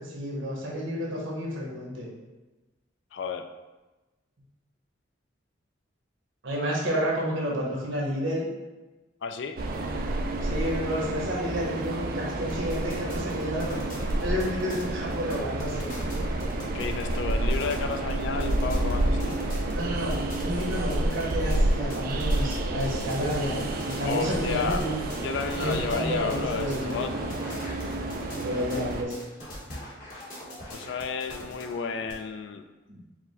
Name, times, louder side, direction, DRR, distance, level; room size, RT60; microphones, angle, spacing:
voice 1, 0.0-2.1 6.4-8.5 10.4-13.7 14.2-16.0 19.7-25.0 25.6-27.1 28.4-29.2 32.9-33.0, equal, 85° right, -3 dB, 1.1 m, -30 dB
voice 2, 3.1-3.5 9.2-9.6 16.7-19.4 24.1-24.8 25.2-27.2 30.7-32.6, left 5 dB, 65° left, 8 dB, 0.3 m, -32 dB
Train, 9.6-29.0, right 1 dB, 50° right, 0.3 m, -29 dB
sound 1, 12.5-32.1, left 1 dB, 45° left, 0.9 m, -42 dB
4.7 x 2.1 x 3.7 m, 1.1 s
head